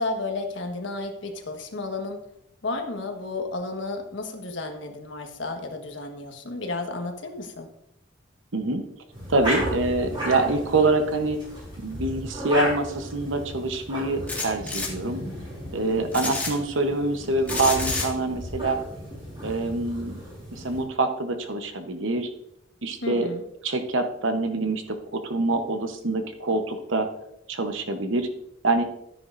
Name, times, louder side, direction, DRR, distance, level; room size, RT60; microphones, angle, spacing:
voice 1, 0.0-2.2 2.6-7.7 23.0-23.4, left 2 dB, 70° left, 4 dB, 1.4 m, -32 dB
voice 2, 8.5-8.8 9.3-11.4 11.8-15.2 15.7-18.8 19.4-20.1 20.5-22.3 22.8-23.3 23.6-24.8 25.1-27.1 27.5-28.3 28.6-28.8, right 2 dB, 80° right, 7 dB, 0.9 m, -25 dB
sound 1, 9.1-20.8, equal, 25° right, 4.1 m, -35 dB
sound 2, 14.3-14.9 16.1-16.5 17.5-18.1, left 3 dB, 10° left, 1.7 m, -29 dB
13.0 x 9.7 x 2.6 m, 0.80 s
head